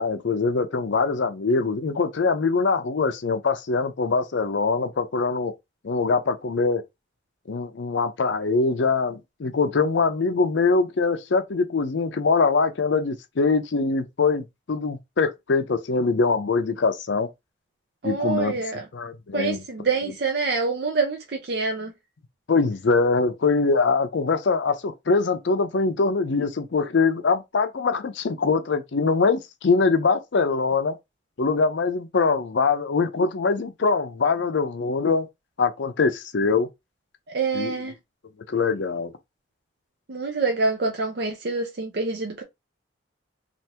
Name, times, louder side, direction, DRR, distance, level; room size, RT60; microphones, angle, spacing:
voice 1, 0.0-5.5 5.8-6.8 7.5-17.3 18.0-18.6 18.9-19.6 22.5-30.9 31.4-35.3 35.6-36.7 37.5-37.7 38.5-39.1, left 4 dB, 70° left, 0.5 m, -23 dB
voice 2, 18.0-18.8 19.3-21.9 37.3-37.9 40.1-42.4, right 4 dB, 55° right, 0.5 m, -26 dB
3.3 x 2.5 x 2.8 m
head